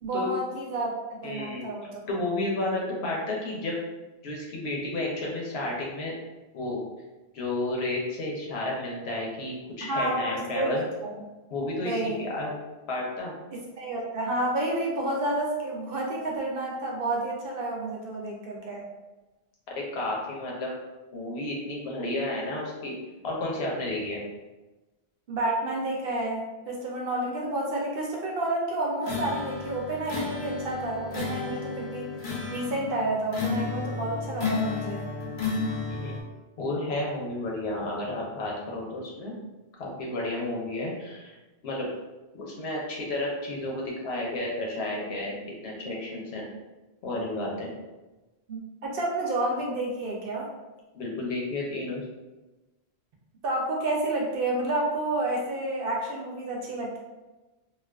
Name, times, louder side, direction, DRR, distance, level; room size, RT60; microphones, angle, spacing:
voice 1, 0.0-0.9 1.2-2.0 9.9-10.7 11.0-11.2 11.8-12.3 13.5-18.8 25.3-32.1 32.5-35.1 48.5-50.5 53.4-57.0, right 1 dB, 65° right, -2 dB, 0.7 m, -30 dB
voice 2, 1.2-1.7 2.1-3.7 4.2-6.1 6.5-6.8 7.3-10.8 11.5-12.5 12.9-13.3 19.8-20.7 21.1-22.9 23.2-24.2 35.9-36.2 36.6-39.3 39.8-41.3 41.6-41.9 42.3-45.4 45.6-46.5 47.0-47.7 50.9-52.0, left 2 dB, 80° left, -3 dB, 0.9 m, -31 dB
sound 1, 29.0-36.2, left 4 dB, 60° left, 0.6 m, -32 dB
2.3 x 2.3 x 2.2 m, 1.1 s
omnidirectional pair, 1.1 m